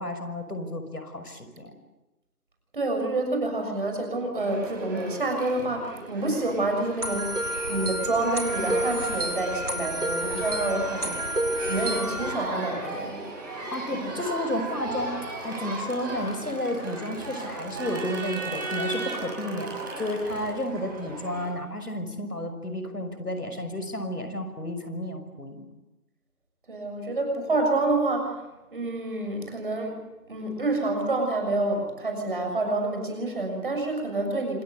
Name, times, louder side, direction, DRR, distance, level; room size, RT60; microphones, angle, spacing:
voice 1, 0.0-1.7 13.5-25.6, left 1 dB, 80° left, 8 dB, 6.1 m, -32 dB
voice 2, 2.7-7.4 7.7-13.3 14.0-14.1 26.7-28.4 28.7-29.9 30.3-34.6, right 2 dB, 35° right, 3 dB, 6.8 m, -28 dB
Crowd, 4.4-21.5, right 2 dB, 15° right, 6.0 m, -36 dB
sound 1, 7.0-12.3, right 1 dB, 80° right, 4.2 m, -30 dB
26.5 x 22.5 x 8.3 m, 1.0 s
figure-of-eight pair, 170°, 45 cm